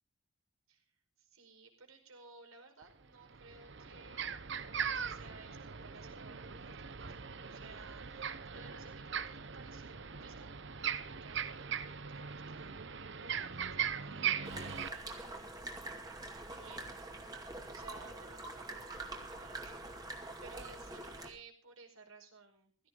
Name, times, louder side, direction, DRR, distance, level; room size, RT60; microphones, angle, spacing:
voice 1, 0.7-4.5 4.9-14.3 14.8-15.4 16.3-22.9, right 4 dB, 85° right, 3 dB, 5.0 m, -58 dB
sound 1, 2.8-2.9 3.3-14.9, right 7 dB, 55° right, 0.9 m, -40 dB
sound 2, 14.4-21.3, right 2 dB, 20° right, 2.4 m, -45 dB
16.5 x 15.0 x 3.9 m, 0.39 s
head